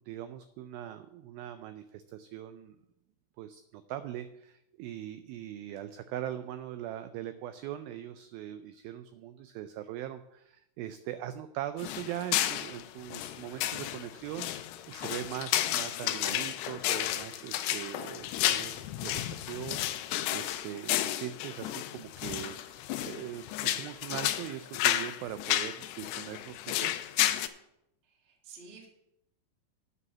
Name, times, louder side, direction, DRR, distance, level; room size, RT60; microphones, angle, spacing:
voice 1, 0.0-2.8 3.4-27.0, right 12 dB, 90° right, 10 dB, 2.1 m, -41 dB
sound 1, 11.8-27.5, left 13 dB, 85° left, 2.7 m, -32 dB
voice 2, 28.0-28.9, right 5 dB, 65° right, 0 dB, 0.6 m, -51 dB
9.6 x 5.5 x 7.2 m, 0.83 s
omnidirectional pair, 4.7 m